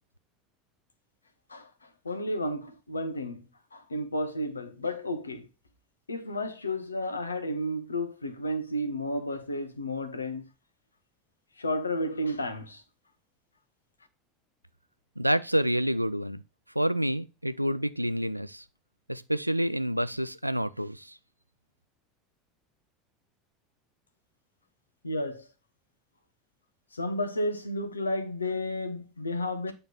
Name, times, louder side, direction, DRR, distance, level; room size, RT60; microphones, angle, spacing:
voice 1, 1.5-5.5 6.1-10.5 11.6-12.8 25.0-25.5 26.9-29.7, left 1 dB, 80° left, 0.9 m, -32 dB
voice 2, 15.2-16.4 16.8-18.6 19.1-21.1, equal, 90° right, 0.4 m, -28 dB
9.1 x 3.3 x 5.7 m
figure-of-eight pair, 75°, 0 cm